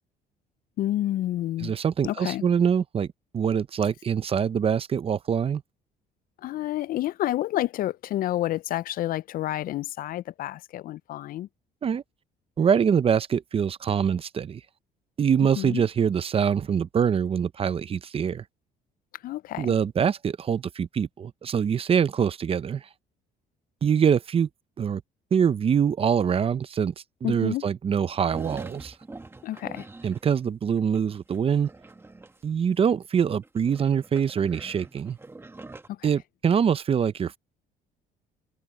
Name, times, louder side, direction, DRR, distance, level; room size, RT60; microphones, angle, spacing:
voice 1, 0.8-1.8 2.0-2.4 6.4-11.5 15.6-15.8 19.2-19.7 27.2-27.7 29.4-29.9 35.9-36.1, left 14 dB, 55° left, 0.4 m, -29 dB
voice 2, 1.6-3.1 3.3-5.6 11.8-12.0 12.6-14.6 15.2-18.4 19.6-22.9 23.8-24.5 24.8-25.0 25.3-26.9 27.2-28.9 30.0-31.7 32.4-35.2 36.0-37.4, right 7 dB, 35° right, 0.7 m, -24 dB
sound 1, 28.3-30.4 30.8-32.9 33.2-35.9, right 2 dB, 15° right, 1.4 m, -44 dB
cardioid pair, 110°, 17 cm